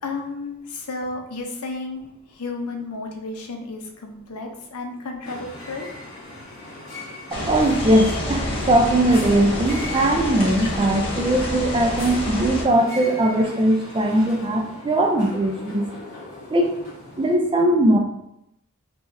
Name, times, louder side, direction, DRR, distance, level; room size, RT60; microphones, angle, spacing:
voice 1, 0.0-5.9, left 3 dB, 90° left, 3 dB, 0.6 m, -33 dB
sound 1, 5.2-17.4, left 1 dB, 60° left, 1.3 m, -39 dB
sound 2, 7.3-12.6, left 1 dB, 25° left, 0.8 m, -28 dB
voice 2, 7.3-15.9 16.5-16.8 17.2-18.0, right 1 dB, 25° right, 2 dB, 0.4 m, -20 dB
3.7 x 2.9 x 2.6 m, 0.82 s
head